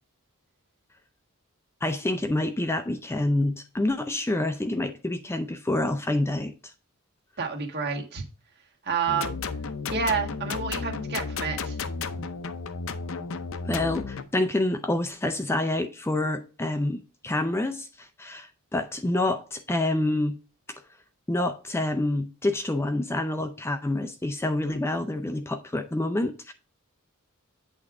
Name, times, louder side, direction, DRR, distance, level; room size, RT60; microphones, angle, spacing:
voice 1, 1.8-6.5 13.6-20.4 21.3-26.5, left 1 dB, 10° left, 0.5 m, -27 dB
voice 2, 7.4-8.2 8.8-9.4 9.9-11.8, right 5 dB, 50° right, 1.5 m, -29 dB
sound 1, 9.1-14.2, left 4 dB, 65° left, 0.6 m, -33 dB
8.6 x 3.6 x 4.7 m
head